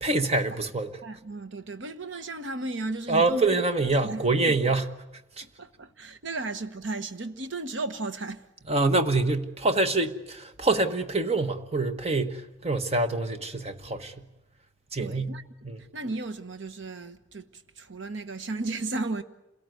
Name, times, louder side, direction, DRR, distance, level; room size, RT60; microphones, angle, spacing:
voice 1, 0.0-1.0 3.1-4.9 5.4-5.5 8.7-14.3 14.9-15.3 15.6-15.8, right 2 dB, 35° right, 1.2 m, -25 dB
voice 2, 1.0-3.5 4.0-4.6 5.4-8.4 15.0-15.4 15.9-19.2, right 2 dB, 85° right, 1.2 m, -34 dB
27.0 x 17.5 x 9.3 m
head